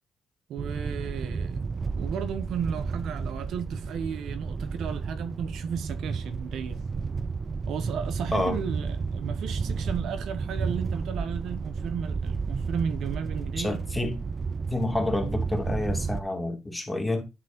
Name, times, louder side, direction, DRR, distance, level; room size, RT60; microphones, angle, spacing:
voice 1, 0.5-1.7 1.9-6.8 7.7-13.9, right 7 dB, 75° right, 1.3 m, -34 dB
sound 1, 0.6-16.2, right 4 dB, 35° right, 0.6 m, -32 dB
voice 2, 13.6-14.2 14.7-17.2, left 2 dB, 10° left, 2.7 m, -28 dB
10.5 x 4.2 x 4.3 m
cardioid pair, 90°, 0 cm